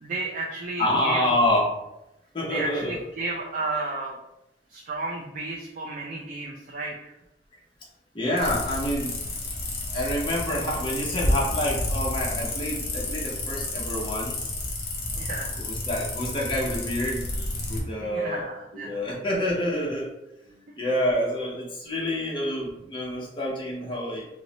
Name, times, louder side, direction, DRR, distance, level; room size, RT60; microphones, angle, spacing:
voice 1, 0.0-1.3 2.5-4.2 4.7-7.1 15.2-15.5 18.0-19.1, right 2 dB, 45° right, 0 dB, 0.3 m, -32 dB
voice 2, 0.8-1.7 2.3-3.0 8.1-9.2 9.9-14.4 15.6-17.2 17.7-18.4 18.7-20.1 20.8-24.3, left 1 dB, 25° left, -4 dB, 0.6 m, -27 dB
sound 1, 8.4-17.8, left 2 dB, 60° left, 0.9 m, -30 dB
3.0 x 2.0 x 3.8 m, 0.88 s
head